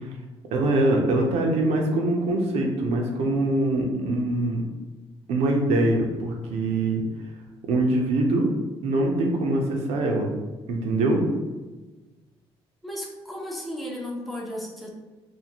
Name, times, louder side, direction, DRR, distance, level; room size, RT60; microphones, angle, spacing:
voice 1, 0.5-4.6 5.3-7.0 7.7-8.5 8.8-10.3 10.7-11.2, right 2 dB, 75° right, 1 dB, 0.6 m, -23 dB
voice 2, 12.8-14.9, equal, ahead, -3 dB, 0.6 m, -34 dB
2.7 x 2.5 x 2.9 m, 1.2 s
cardioid pair, 105°, 11 cm